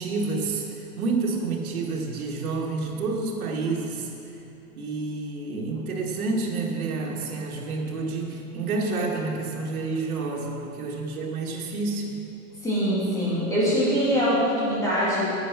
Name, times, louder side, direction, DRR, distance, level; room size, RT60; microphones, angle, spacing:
voice 1, 0.0-4.1 4.8-12.2, right 3 dB, 85° right, -1 dB, 2.2 m, -29 dB
voice 2, 12.6-15.3, equal, 5° left, -10 dB, 2.9 m, -23 dB
10.0 x 9.9 x 6.0 m, 2.9 s
supercardioid pair, 175°, 42 cm